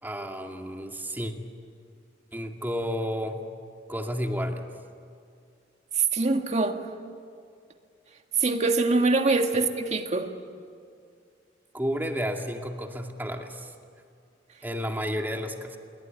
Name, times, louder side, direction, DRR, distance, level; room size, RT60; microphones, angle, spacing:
voice 1, 0.0-1.3 2.3-3.4 3.9-4.6 9.5-9.6 11.7-13.7 14.6-15.8, equal, 10° right, 3 dB, 2.2 m, -31 dB
voice 2, 6.1-6.8 8.4-10.3, right 3 dB, 40° right, 5 dB, 1.8 m, -24 dB
28.0 x 22.5 x 9.5 m, 2.3 s
head